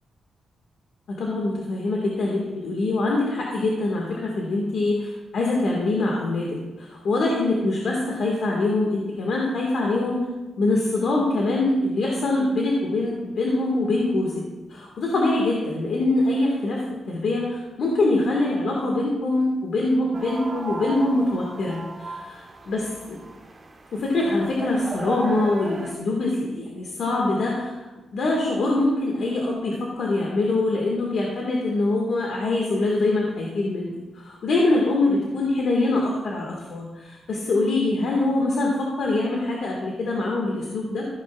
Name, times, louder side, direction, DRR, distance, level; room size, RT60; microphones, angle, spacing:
voice 1, 1.1-10.3 10.6-14.4 14.7-23.2 23.9-27.7 28.1-41.1, left 2 dB, 65° left, -2 dB, 1.7 m, -24 dB
sound 1, 20.1-25.9, right 2 dB, 30° right, 1.1 m, -36 dB
15.0 x 9.5 x 2.4 m, 1.2 s
cardioid pair, 110°, 0 cm